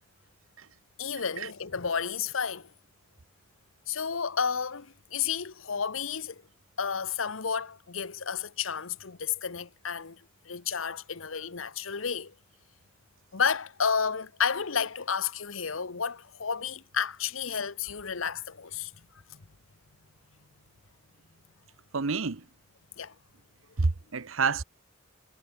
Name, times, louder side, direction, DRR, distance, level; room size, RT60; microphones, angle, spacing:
voice 1, 1.0-2.7 3.9-6.4 6.8-10.2 10.4-12.3 13.3-18.9 23.0-23.1, left 6 dB, 80° left, 1.1 m, -31 dB
voice 2, 21.9-22.4 23.8-24.6, right 4 dB, 85° right, 1.0 m, -28 dB
head